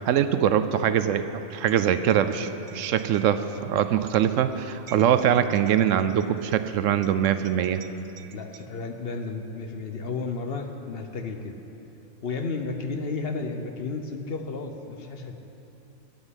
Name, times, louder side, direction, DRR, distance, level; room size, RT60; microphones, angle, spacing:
voice 1, 0.0-7.9 8.2-8.3, right 9 dB, 75° right, 11 dB, 0.9 m, -23 dB
voice 2, 8.3-11.5 12.2-15.4, left 4 dB, 50° left, 5 dB, 0.9 m, -32 dB
16.0 x 5.6 x 9.8 m, 3.0 s
omnidirectional pair, 1.4 m